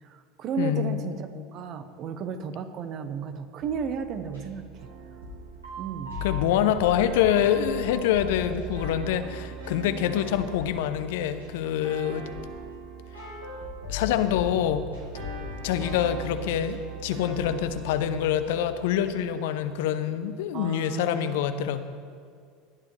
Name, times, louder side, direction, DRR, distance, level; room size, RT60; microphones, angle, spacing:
voice 1, 0.0-4.6 5.8-6.2 20.5-21.4, right 6 dB, 45° right, 9 dB, 1.0 m, -33 dB
voice 2, 0.6-1.2 6.2-12.3 13.9-14.9 15.6-21.8, left 10 dB, 65° left, 11 dB, 0.7 m, -26 dB
sound 1, 3.6-19.3, equal, 85° right, 3.5 m, -38 dB
18.5 x 11.5 x 3.3 m, 2.1 s
figure-of-eight pair, 75°, 0 cm